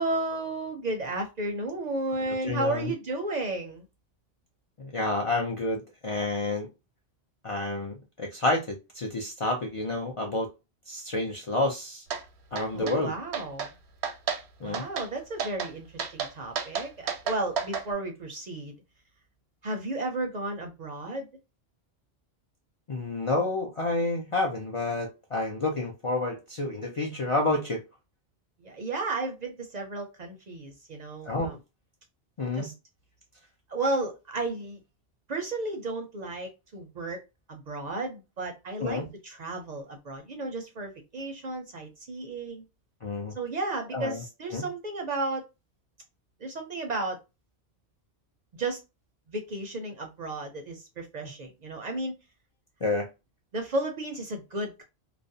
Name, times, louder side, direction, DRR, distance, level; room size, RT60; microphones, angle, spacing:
voice 1, 0.0-3.8 12.7-13.7 14.6-18.7 19.6-21.3 28.6-31.6 32.5-32.7 33.7-34.8 35.3-37.2 37.5-42.6 43.3-45.4 46.4-47.2 48.6-48.8 49.3-52.1 53.5-54.8, right 2 dB, 55° right, 3 dB, 0.5 m, -33 dB
voice 2, 2.3-2.9 4.8-6.7 7.4-10.5 10.9-12.0 12.5-13.1 14.6-14.8 22.9-27.8 31.3-31.6 32.4-32.7 38.8-39.0 43.0-43.3 43.9-44.2 44.5-44.7 52.8-53.1, left 2 dB, 45° left, 0 dB, 0.4 m, -29 dB
sound 1, 12.1-12.2 12.6-13.0 13.3-13.7 14.0-14.4 14.7-15.1 15.4-15.7 16.0-17.8, right 6 dB, 85° right, 0.8 m, -31 dB
2.4 x 2.0 x 2.5 m, 0.26 s
omnidirectional pair, 1.1 m